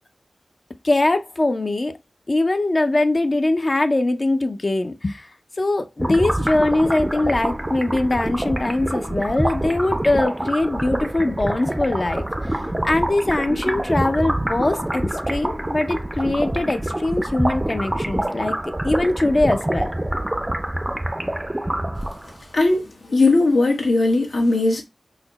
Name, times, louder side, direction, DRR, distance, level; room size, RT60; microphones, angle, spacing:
voice 1, 0.8-2.0 2.3-18.6 18.8-19.9, left 2 dB, 40° left, 0.4 m, -22 dB
sound 1, 6.0-22.4, right 1 dB, 15° right, 0.4 m, -26 dB
voice 2, 22.5-24.8, left 2 dB, 80° left, 1.0 m, -18 dB
4.0 x 2.1 x 3.9 m
wide cardioid pair, 65°, 0 cm